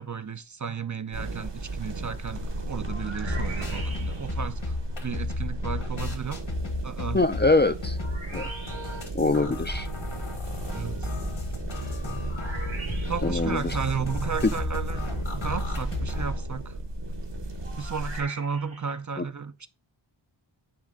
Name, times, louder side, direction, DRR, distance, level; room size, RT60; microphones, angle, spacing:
voice 1, 0.0-4.7 5.0-6.4 6.8-7.2 10.7-11.1 13.1-16.7 17.8-19.7, right 6 dB, 40° right, 0.5 m, -34 dB
sound 1, 1.1-18.2, right 2 dB, 60° right, 1.3 m, -34 dB
sound 2, 2.8-4.5 8.0-9.2 12.3-13.5 17.6-19.0, right 3 dB, 85° right, 1.8 m, -42 dB
sound 3, 3.1-16.4, left 3 dB, 80° left, 1.7 m, -34 dB
voice 2, 7.1-8.0 8.3-8.5 9.1-9.9 13.2-13.8 14.4-14.5 19.2-19.3, left 3 dB, 25° left, 0.4 m, -23 dB
9.3 x 3.3 x 3.8 m
wide cardioid pair, 50°, 47 cm